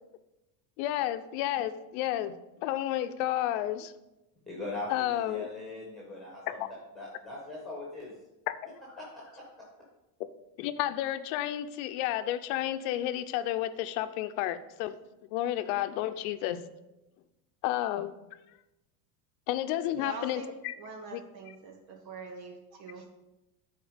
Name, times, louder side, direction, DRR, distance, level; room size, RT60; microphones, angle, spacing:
voice 1, 0.8-2.4 2.6-3.9 4.9-5.5 10.6-15.0 15.3-16.6 17.6-18.1 19.5-20.7 21.1-21.2, left 13 dB, 60° left, 11 dB, 0.7 m, -31 dB
voice 2, 4.5-8.1 8.9-9.5, left 2 dB, ahead, -4 dB, 1.4 m, -41 dB
voice 3, 20.0-20.5 20.8-23.1, right 4 dB, 90° right, 2 dB, 2.1 m, -43 dB
10.5 x 4.3 x 5.1 m, 0.97 s
cardioid pair, 155°, 48 cm